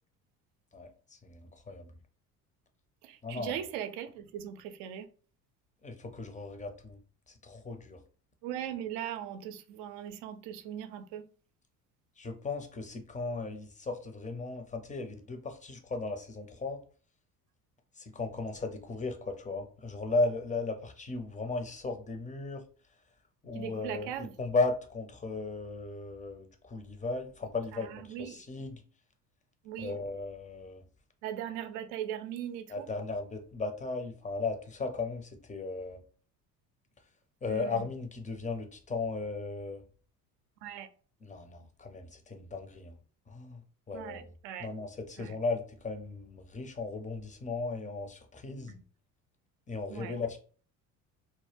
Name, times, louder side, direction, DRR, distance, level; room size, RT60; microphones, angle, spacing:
voice 1, 0.7-2.0 3.2-3.6 5.8-7.0 7.3-8.0 12.2-16.8 18.0-22.6 23.4-28.8 29.8-30.8 32.7-36.0 37.4-39.8 41.2-43.0 43.3-44.3 44.6-48.8 49.7-50.4, left 3 dB, 15° left, 0.5 m, -36 dB
voice 2, 3.3-5.0 8.4-11.2 23.6-24.3 28.1-28.3 29.7-29.9 31.2-32.9 40.6-40.9 43.9-44.7 49.9-50.1, right 10 dB, 65° right, 0.5 m, -38 dB
2.1 x 2.0 x 3.2 m
hypercardioid pair, 60°, 46 cm